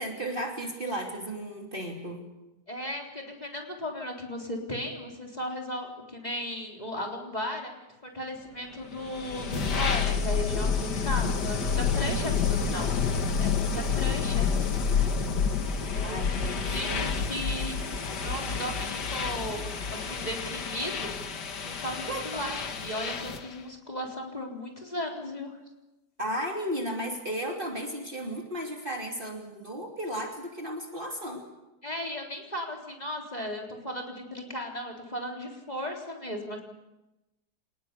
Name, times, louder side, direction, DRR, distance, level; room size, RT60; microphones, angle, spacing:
voice 1, 0.0-2.2 12.0-12.4 16.0-17.1 22.1-22.4 26.2-31.5, equal, 30° right, 2 dB, 3.1 m, -34 dB
voice 2, 2.7-7.7 8.0-14.7 15.9-17.8 18.1-21.1 21.6-25.6 31.8-36.6, equal, 25° left, 0 dB, 4.0 m, -36 dB
sound 1, 8.9-23.5, left 6 dB, 80° left, 2.3 m, -29 dB
27.0 x 19.5 x 8.4 m, 1.0 s
omnidirectional pair, 1.8 m